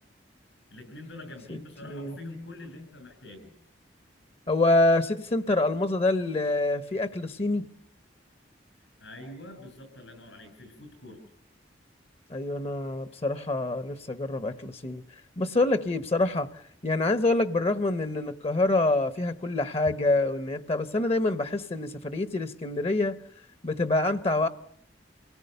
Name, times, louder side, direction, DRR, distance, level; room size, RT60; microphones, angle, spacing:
voice 1, 0.7-3.5 8.8-11.2, left 2 dB, 80° left, 7.7 m, -45 dB
voice 2, 4.5-7.7 12.3-15.0 15.4-16.5 16.8-23.2 23.6-24.5, left 2 dB, 35° left, 0.8 m, -26 dB
28.0 x 18.0 x 6.7 m
head